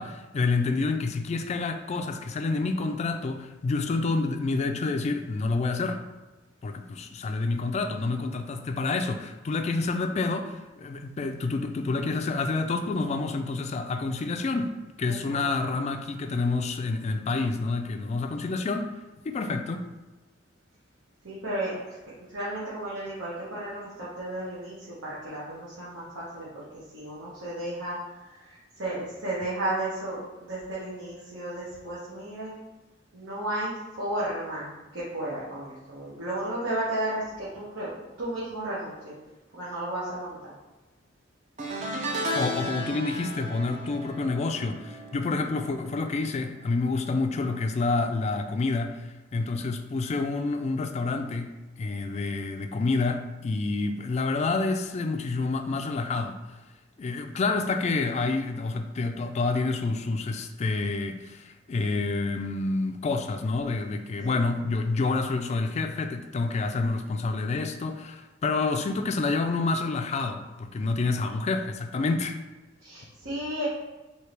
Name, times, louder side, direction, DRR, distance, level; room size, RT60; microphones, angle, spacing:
voice 1, 0.0-6.0 6.6-19.0 19.2-19.9 42.3-56.4 57.0-72.4, left 3 dB, 35° left, 7 dB, 0.3 m, -28 dB
voice 2, 15.0-15.4 21.2-21.8 22.2-32.6 33.1-34.7 34.9-37.9 38.2-39.1 39.5-40.5 64.2-64.4 72.8-73.7, right 1 dB, 85° right, -10 dB, 1.2 m, -34 dB
sound 1, 41.6-47.0 47.2-47.6 48.8-48.9, equal, 40° right, 0.5 m, -35 dB
4.5 x 2.8 x 3.3 m, 1.1 s
head